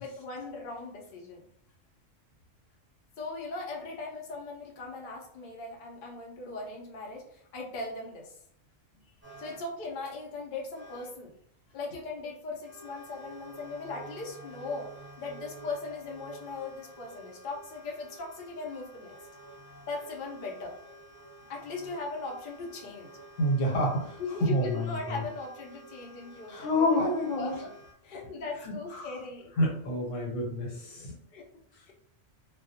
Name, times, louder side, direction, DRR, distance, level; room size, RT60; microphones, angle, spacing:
voice 1, 0.0-1.4 3.2-8.4 9.4-11.3 11.7-14.9 15.2-19.1 19.9-20.7 21.5-23.2 24.2-26.9 27.3-27.7 28.0-29.5 31.3-31.4 31.9-32.0, left 3 dB, 55° left, -1 dB, 0.6 m, -39 dB
sound 1, 9.2-9.7 10.4-10.5 10.7-11.1 12.6-27.9, right 1 dB, 10° right, 0.7 m, -50 dB
voice 2, 23.4-25.2 26.5-27.5 28.6-29.2 29.6-31.1, left 1 dB, 80° left, -1 dB, 1.1 m, -28 dB
2.3 x 2.1 x 2.7 m, 0.66 s
omnidirectional pair, 1.3 m